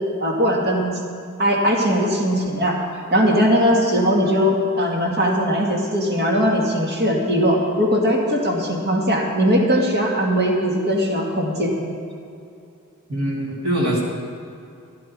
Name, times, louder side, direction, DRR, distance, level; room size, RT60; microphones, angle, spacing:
voice 1, 0.2-0.9 1.4-2.7 3.1-11.7, equal, 50° right, -1 dB, 2.3 m, -19 dB
voice 2, 13.1-14.0, right 1 dB, 80° right, -4 dB, 3.5 m, -22 dB
16.0 x 11.5 x 4.9 m, 2.6 s
head